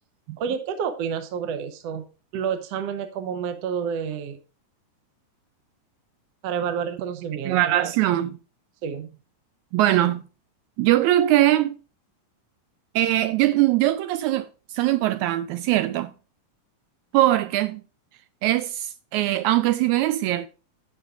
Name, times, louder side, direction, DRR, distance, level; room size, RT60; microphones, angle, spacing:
voice 1, 0.4-2.0 2.3-4.4 6.4-7.7 8.8-9.1, right 7 dB, 70° right, 1.6 m, -29 dB
voice 2, 7.4-8.4 9.7-10.2 10.8-11.7 12.9-16.1 17.1-17.8 18.4-20.5, right 14 dB, 85° right, 1.7 m, -21 dB
11.0 x 8.0 x 2.4 m
omnidirectional pair, 3.9 m